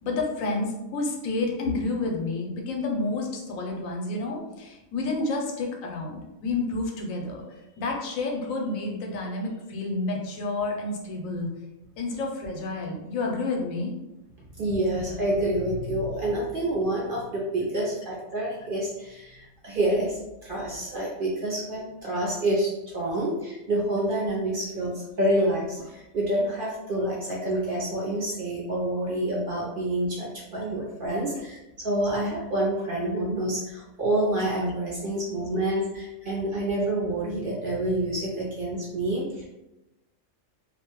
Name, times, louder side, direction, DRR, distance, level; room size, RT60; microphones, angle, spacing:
voice 1, 0.0-7.4 7.8-11.5 12.0-13.9, left 3 dB, 85° left, 0 dB, 1.0 m, -30 dB
voice 2, 14.6-39.5, right 1 dB, 60° right, -5 dB, 0.6 m, -28 dB
2.4 x 2.1 x 2.9 m, 0.97 s
omnidirectional pair, 1.4 m